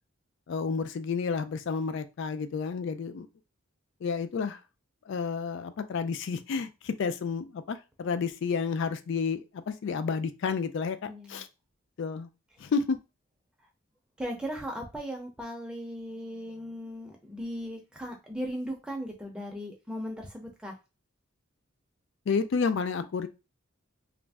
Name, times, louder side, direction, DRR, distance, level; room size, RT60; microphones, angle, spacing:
voice 1, 0.5-3.3 4.0-4.6 5.1-11.5 12.0-12.3 12.6-13.0 22.3-23.3, left 5 dB, 60° left, 0.3 m, -30 dB
voice 2, 11.0-11.4 14.2-20.7, equal, 5° right, 0.5 m, -37 dB
2.5 x 2.0 x 3.3 m
head